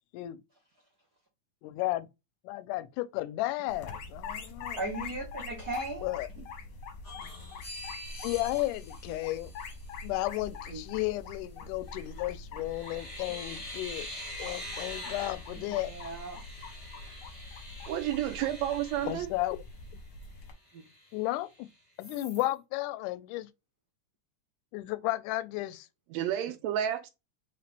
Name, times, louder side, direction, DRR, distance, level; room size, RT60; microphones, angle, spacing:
voice 1, 1.6-2.1 2.5-4.8 6.0-6.3 8.2-9.5 10.0-14.1 14.4-15.9 19.1-19.6 21.1-21.7 22.0-23.5 24.7-25.9, left 17 dB, 90° left, 2.1 m, -33 dB
sound 1, 3.7-20.5, left 4 dB, 60° left, 1.4 m, -44 dB
voice 2, 4.8-6.1 10.7-10.8 15.7-16.4, right 2 dB, 60° right, 1.0 m, -36 dB
sound 2, 7.0-10.1 11.9-12.2 12.6-19.9 20.3-20.4 20.7-21.6 22.0-22.5, left 1 dB, 30° left, 1.3 m, -45 dB
voice 3, 17.9-19.3 26.1-27.1, right 11 dB, 80° right, 1.6 m, -31 dB
4.9 x 3.3 x 3.3 m
omnidirectional pair, 3.5 m